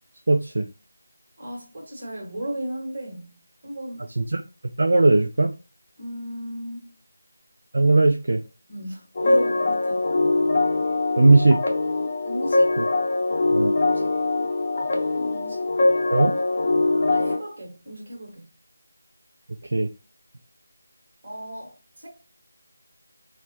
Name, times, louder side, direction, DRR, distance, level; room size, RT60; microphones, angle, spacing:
voice 1, 0.3-0.7 4.2-4.4 4.8-5.5 7.7-8.4 11.2-11.6 12.8-12.9 13.5-13.8 16.1-16.3 19.7-19.9, right 2 dB, 55° right, 0.3 m, -18 dB
voice 2, 1.4-4.1 6.0-6.9 8.7-10.0 12.2-12.8 13.8-14.2 14.7-15.7 16.2-16.4 17.1-18.5 21.2-22.1, right 1 dB, 35° right, 1.4 m, -35 dB
sound 1, 9.1-17.4, left 2 dB, 35° left, 0.6 m, -22 dB
4.2 x 2.1 x 2.9 m
figure-of-eight pair, 165°, 0 cm